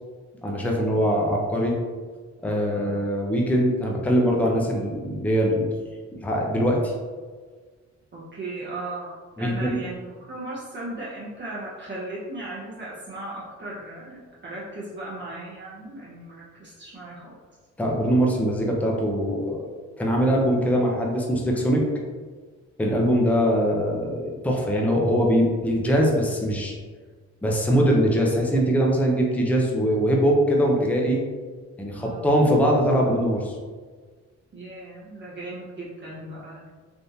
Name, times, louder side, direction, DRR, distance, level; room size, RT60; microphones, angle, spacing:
voice 1, 0.4-1.7 2.4-5.7 6.2-6.9 9.4-9.8 17.8-19.7 20.0-21.8 22.8-26.7 27.4-31.2 31.8-33.5, equal, 5° left, -1 dB, 0.5 m, -22 dB
voice 2, 0.9-1.5 2.7-3.0 8.1-17.4 23.0-23.1 31.9-32.3 34.5-36.7, right 2 dB, 40° right, -7 dB, 0.8 m, -37 dB
3.5 x 2.5 x 2.7 m, 1.5 s
cardioid pair, 90°, 30 cm